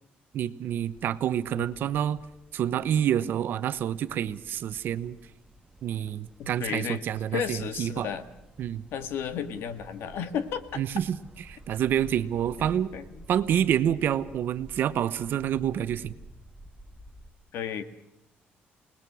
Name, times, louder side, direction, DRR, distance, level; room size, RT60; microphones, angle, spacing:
voice 1, 0.3-2.2 2.5-5.2 5.8-8.1 8.6-8.8 10.8-11.2 11.5-12.9 13.3-16.1, right 10 dB, 60° right, 13 dB, 1.0 m, -28 dB
sound 1, 0.6-17.3, right 1 dB, 10° right, 1.7 m, -51 dB
voice 2, 6.4-7.0 7.3-8.2 8.9-10.8 12.6-13.2 17.5-17.8, left 8 dB, 75° left, 11 dB, 1.8 m, -33 dB
28.5 x 19.5 x 6.2 m, 0.84 s
cardioid pair, 155°, 4 cm